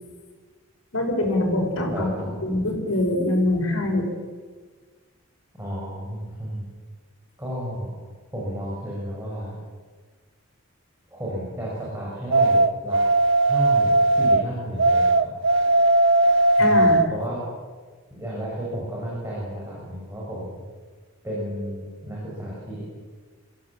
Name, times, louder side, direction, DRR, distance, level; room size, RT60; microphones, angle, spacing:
voice 1, 0.9-4.1 16.6-17.0, left 1 dB, 75° left, 2 dB, 5.6 m, -24 dB
voice 2, 1.8-2.5 5.6-6.7 7.4-7.9 8.3-9.6 11.1-13.0 13.4-15.3 16.5-17.4 18.1-20.6 21.2-22.8, equal, 15° right, -5 dB, 6.2 m, -32 dB
sound 1, 12.3-14.4 14.8-17.1, right 2 dB, 60° right, 0.9 m, -18 dB
26.0 x 15.5 x 7.4 m, 1.5 s
head